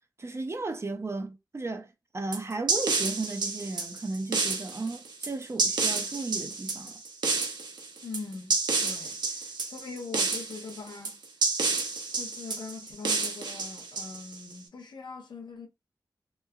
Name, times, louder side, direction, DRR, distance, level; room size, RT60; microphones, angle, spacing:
voice 1, 0.2-7.0, right 3 dB, 35° right, 0.5 m, -35 dB
sound 1, 2.3-14.5, right 4 dB, 80° right, 0.6 m, -30 dB
voice 2, 8.0-11.2 12.1-15.7, left 4 dB, 85° left, 0.7 m, -42 dB
3.1 x 2.1 x 2.3 m
cardioid pair, 50°, 8 cm